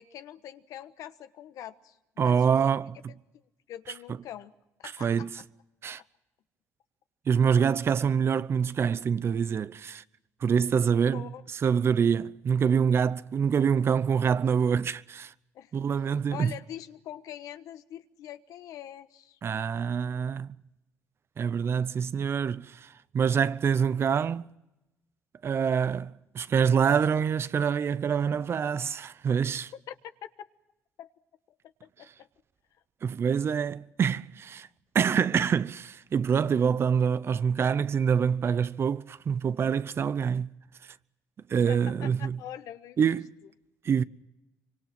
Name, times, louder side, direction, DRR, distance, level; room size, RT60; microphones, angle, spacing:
voice 1, 0.0-2.4 3.7-4.5 4.8-5.4 11.1-11.4 15.5-15.7 16.3-19.4 29.9-30.0 31.0-31.1 31.8-32.3 41.7-43.2, left 11 dB, 70° left, 1.2 m, -43 dB
voice 2, 2.2-3.1 5.0-5.4 5.8-6.0 7.3-10.0 10.4-15.3 15.7-16.5 19.4-20.6 21.4-24.5 25.4-29.7 33.0-34.7 34.9-40.5 41.5-42.4 43.0-43.3 43.8-44.0, right 7 dB, 45° right, 0.8 m, -26 dB
25.0 x 24.5 x 6.0 m
cardioid pair, 95°, 6 cm